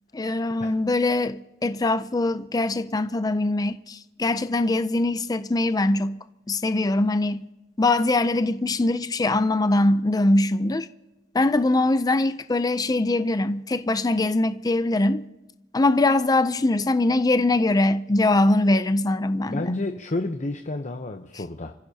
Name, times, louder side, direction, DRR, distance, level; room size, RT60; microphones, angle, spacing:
voice 1, 0.1-6.2 6.5-7.4 7.8-10.9 11.3-15.2 15.7-19.7, left 2 dB, 20° left, 0.4 m, -22 dB
voice 2, 19.5-21.7, left 2 dB, 40° left, 0.8 m, -30 dB
29.0 x 15.0 x 2.8 m
head